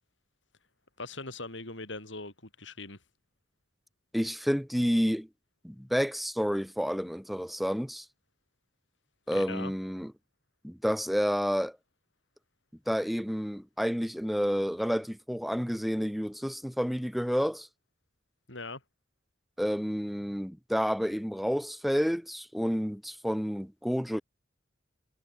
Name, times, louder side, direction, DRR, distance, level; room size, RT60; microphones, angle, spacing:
voice 1, 1.0-3.0 9.3-9.7 18.5-18.8, left 3 dB, 80° left, 6.6 m, -40 dB
voice 2, 4.1-5.3 5.6-8.0 9.3-10.1 10.6-11.8 12.9-17.7 19.6-24.2, equal, ahead, 4.9 m, -30 dB
head